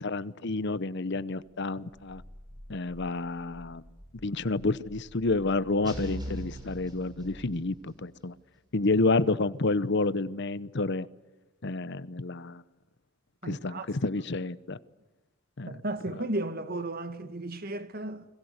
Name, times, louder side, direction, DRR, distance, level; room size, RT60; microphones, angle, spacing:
voice 1, 0.0-2.2 2.7-3.8 4.2-8.3 8.7-11.1 11.6-12.6 13.5-14.8 15.6-15.7, left 3 dB, 55° left, 0.9 m, -29 dB
Growling, 1.4-7.7, equal, 20° left, 4.7 m, -51 dB
sound 1, 5.8-7.7, equal, 20° right, 7.0 m, -40 dB
voice 2, 13.4-13.9 15.6-18.3, right 2 dB, 45° right, 1.6 m, -34 dB
30.0 x 22.0 x 8.1 m
head